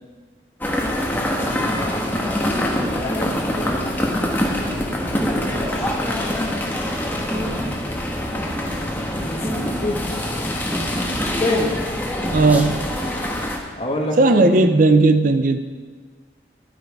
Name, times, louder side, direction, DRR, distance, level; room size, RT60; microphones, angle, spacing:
sound 1, 0.6-13.6, left 1 dB, 10° left, 1.1 m, -25 dB
voice 1, 1.0-2.1 2.8-6.6 8.2-10.1 11.2-11.8 13.8-14.7, left 1 dB, 30° left, 0 dB, 1.4 m, -30 dB
sound 2, 2.2-13.1, equal, 10° right, 0.9 m, -32 dB
voice 2, 12.3-12.8 14.2-15.6, right 2 dB, 45° right, 9 dB, 0.5 m, -15 dB
12.5 x 9.2 x 4.8 m, 1.5 s
head